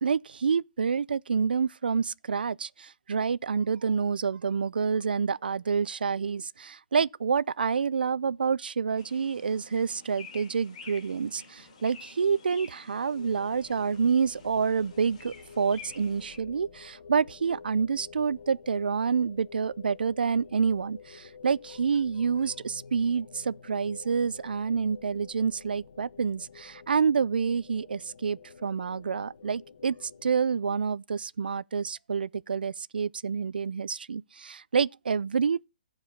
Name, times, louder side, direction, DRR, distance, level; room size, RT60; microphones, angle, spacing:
voice 1, 0.0-29.9 30.2-35.6, right 6 dB, 75° right, 0.4 m, -28 dB
sound 1, 9.0-16.4, left 4 dB, 40° left, 2.9 m, -50 dB
sound 2, 13.1-30.3, left 5 dB, 55° left, 1.1 m, -50 dB
14.0 x 4.8 x 5.6 m
hypercardioid pair, 170°, 5 cm